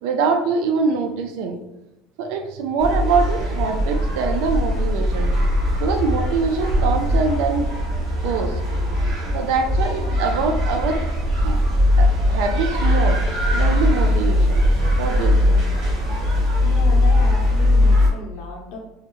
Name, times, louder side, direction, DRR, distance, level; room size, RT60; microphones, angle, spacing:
voice 1, 0.0-1.6 2.2-5.3 5.8-7.7 8.2-8.5 9.3-11.1 11.4-11.6 12.0-13.2 13.5-14.6 15.0-15.6, right 4 dB, 70° right, 5 dB, 0.3 m, -23 dB
sound 1, 2.8-18.1, left 1 dB, 40° right, 1.3 m, -20 dB
voice 2, 16.6-18.8, left 3 dB, 60° left, -1 dB, 0.8 m, -34 dB
3.4 x 2.1 x 3.0 m, 0.93 s
cardioid pair, 165°, 0 cm